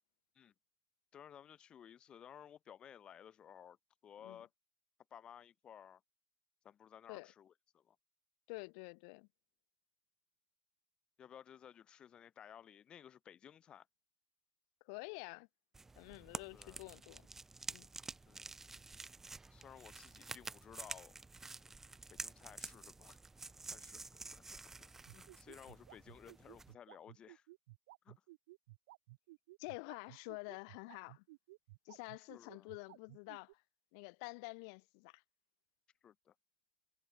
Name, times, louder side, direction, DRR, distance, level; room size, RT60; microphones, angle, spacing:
voice 1, 1.1-3.8 4.0-4.5 5.1-6.0 6.6-8.0 11.2-13.9 16.5-16.9 18.3-18.6 19.5-21.2 22.1-23.2 23.7-27.5 28.0-28.2 32.3-32.7 36.0-36.3, left 9 dB, 30° left, 2.6 m, -57 dB
voice 2, 8.5-9.3 14.9-15.5 16.0-17.3 17.7-17.9 29.6-31.2 31.9-33.6 33.9-35.2, left 34 dB, 60° left, 2.3 m, -48 dB
sound 1, 15.7-26.7, right 3 dB, 10° right, 2.9 m, -50 dB
sound 2, 25.1-33.5, right 20 dB, 65° right, 4.6 m, -57 dB
supercardioid pair, 120°, 3 cm